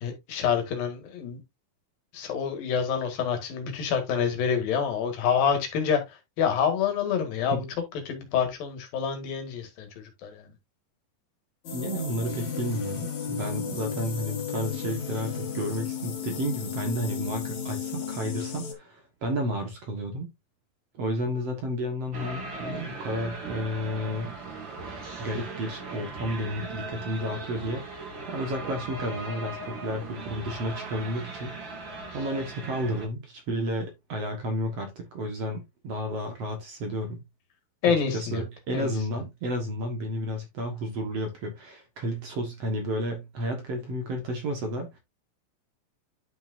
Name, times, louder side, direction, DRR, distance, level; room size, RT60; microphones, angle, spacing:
voice 1, 0.0-1.4 2.1-7.6 8.1-10.5 37.8-38.4 38.7-38.9, left 7 dB, 75° left, 3.7 m, -27 dB
sound 1, 11.6-18.7, left 7 dB, 55° left, 3.3 m, -34 dB
voice 2, 11.7-20.3 21.0-24.3 25.2-37.2 37.8-45.0, equal, 55° right, 2.1 m, -32 dB
sound 2, 22.1-33.1, right 3 dB, 35° right, 2.6 m, -38 dB
11.0 x 5.8 x 2.6 m
omnidirectional pair, 4.1 m